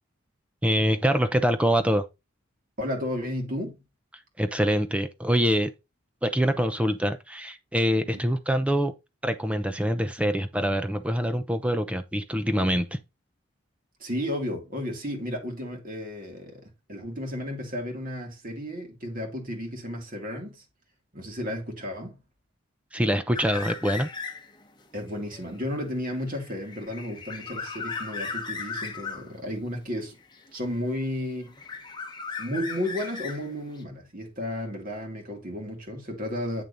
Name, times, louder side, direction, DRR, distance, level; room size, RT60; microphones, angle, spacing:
voice 1, 0.6-2.0 4.4-5.7 6.2-8.9 9.2-13.0 22.9-24.1, equal, 5° right, 0.7 m, -25 dB
voice 2, 2.8-3.8 8.1-8.2 14.0-16.6 16.9-20.6 21.1-22.2 24.9-30.2 30.5-31.6 32.4-36.6, left 1 dB, 40° right, 2.5 m, -33 dB
sound 1, 23.3-24.6 25.0-29.3 30.3-31.1 31.4-33.8, left 4 dB, 20° left, 1.1 m, -37 dB
8.7 x 6.6 x 2.7 m
head